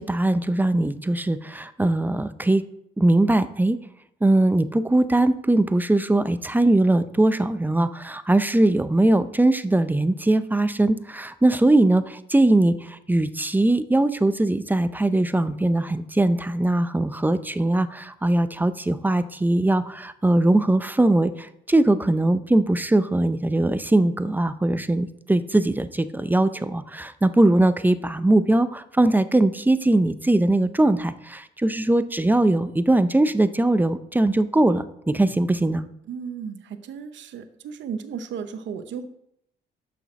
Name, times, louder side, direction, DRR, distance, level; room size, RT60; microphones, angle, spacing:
voice 1, 0.0-2.6 3.0-3.8 4.2-35.9, right 1 dB, 10° right, 13 dB, 0.5 m, -21 dB
voice 2, 36.1-39.1, right 6 dB, 70° right, 9 dB, 0.8 m, -34 dB
7.0 x 6.1 x 6.0 m, 0.76 s
cardioid pair, 90°, 20 cm